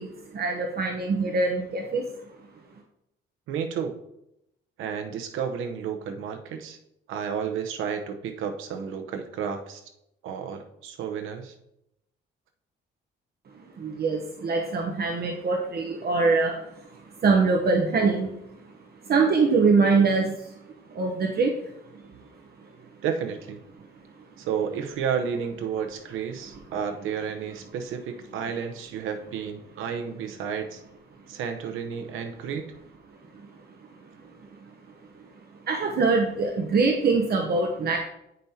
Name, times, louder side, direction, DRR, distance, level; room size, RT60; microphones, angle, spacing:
voice 1, 0.0-2.0 13.8-16.7 17.2-18.3 19.1-20.5 20.9-21.6 35.7-38.0, right 4 dB, 50° right, 1 dB, 1.0 m, -23 dB
voice 2, 3.5-4.0 4.8-6.8 7.1-9.8 10.2-11.5 23.0-23.6 24.4-30.8 31.3-32.7, right 7 dB, 90° right, 6 dB, 0.9 m, -31 dB
9.3 x 5.3 x 2.8 m, 0.82 s
cardioid pair, 90°, 20 cm